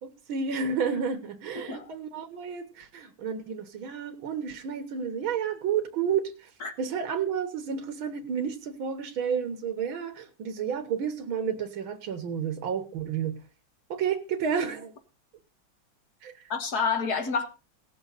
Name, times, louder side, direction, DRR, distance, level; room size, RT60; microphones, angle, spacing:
voice 1, 0.0-6.5 6.8-13.4 13.9-14.9 16.2-16.4, right 7 dB, 85° right, 2.1 m, -31 dB
voice 2, 1.6-1.9 6.6-6.7 16.5-17.5, left 5 dB, 50° left, 2.0 m, -29 dB
17.5 x 7.2 x 4.0 m
omnidirectional pair, 2.2 m